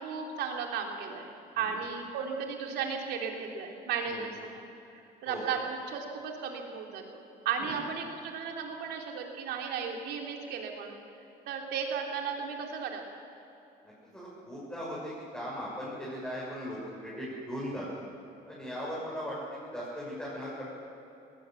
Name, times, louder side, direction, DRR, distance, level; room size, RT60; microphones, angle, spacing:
voice 1, 0.0-4.5 5.2-10.9 11.5-13.0, right 6 dB, 80° right, 2 dB, 3.3 m, -35 dB
voice 2, 13.8-17.9 18.5-19.4 19.7-20.7, equal, 5° left, -7 dB, 6.7 m, -38 dB
19.5 x 18.5 x 7.5 m, 2.9 s
cardioid pair, 110°, 17 cm